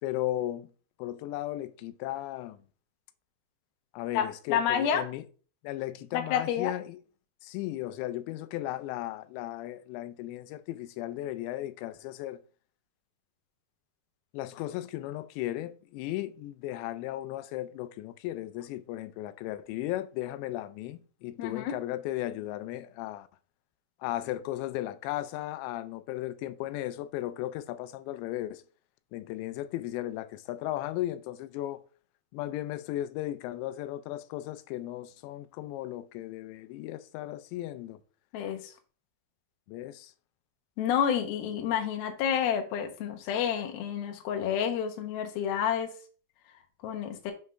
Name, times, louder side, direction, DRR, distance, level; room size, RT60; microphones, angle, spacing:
voice 1, 0.0-0.7 1.0-2.6 3.9-5.2 5.6-7.0 7.4-12.4 14.3-23.3 24.0-28.6 29.1-31.8 32.3-38.0 39.7-40.1, left 14 dB, 85° left, 2.8 m, -36 dB
voice 2, 4.1-5.1 6.1-6.7 21.4-21.8 38.3-38.7 40.8-45.9 46.8-47.3, left 8 dB, 70° left, 2.6 m, -29 dB
7.6 x 3.6 x 5.5 m
omnidirectional pair, 5.1 m